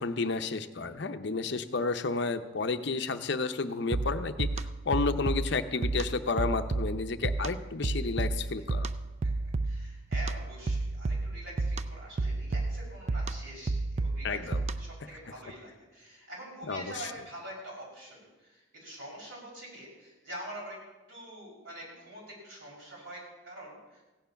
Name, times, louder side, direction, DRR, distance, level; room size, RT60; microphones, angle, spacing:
voice 1, 0.0-8.9 14.2-14.6 16.7-17.1, left 4 dB, 55° left, 9 dB, 0.7 m, -31 dB
sound 1, 3.9-15.1, right 3 dB, 35° right, 0.4 m, -32 dB
voice 2, 9.6-14.4 14.7-20.8 21.1-24.0, right 1 dB, 70° right, -4 dB, 6.1 m, -45 dB
16.0 x 9.3 x 5.7 m, 1.1 s
head